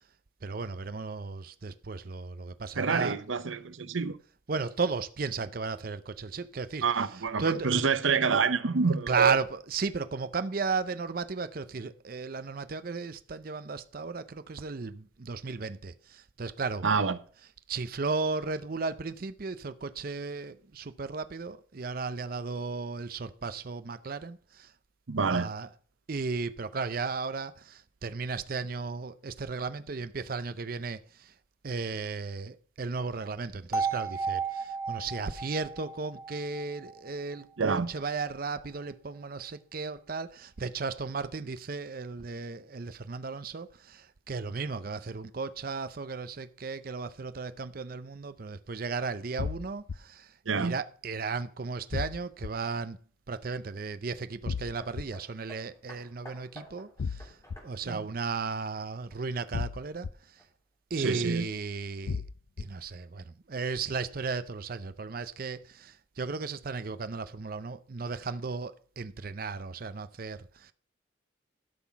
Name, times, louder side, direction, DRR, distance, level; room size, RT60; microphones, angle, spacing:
voice 1, 0.4-3.2 4.5-6.8 7.4-7.7 9.1-16.8 17.7-24.7 25.3-25.7 26.1-31.3 31.6-53.0 53.3-57.4 57.6-60.4 60.9-62.2 62.6-70.7, right 4 dB, 45° right, 0.5 m, -35 dB
voice 2, 2.8-4.2 6.8-9.4 16.8-17.2 25.1-25.5 37.6-37.9 50.5-50.8 57.9-58.0 61.0-61.5, right 5 dB, 80° right, 0.8 m, -27 dB
sound 1, 33.7-37.7, right 5 dB, 15° right, 0.9 m, -34 dB
sound 2, 49.4-50.0 51.9-52.5 54.4-55.0 57.0-57.6 59.5-60.1 62.1-62.6, left 5 dB, 80° left, 0.5 m, -33 dB
Hammer, 54.8-59.5 60.4-60.5, equal, 15° left, 3.0 m, -52 dB
12.5 x 5.8 x 5.9 m
head